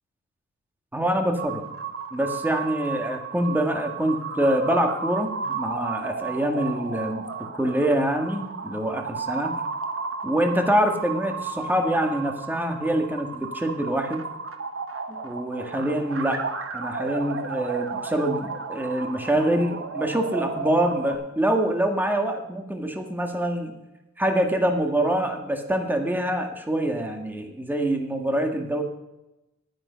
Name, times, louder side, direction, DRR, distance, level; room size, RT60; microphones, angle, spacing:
voice 1, 0.9-1.7 2.1-7.3 7.6-9.5 10.2-14.2 15.1-16.4 16.7-23.7 24.2-28.8, right 1 dB, 5° right, 4 dB, 1.6 m, -25 dB
sound 1, 1.4-21.1, right 5 dB, 50° right, 1.3 m, -33 dB
11.0 x 10.0 x 5.2 m, 0.95 s
wide cardioid pair, 105°, 29 cm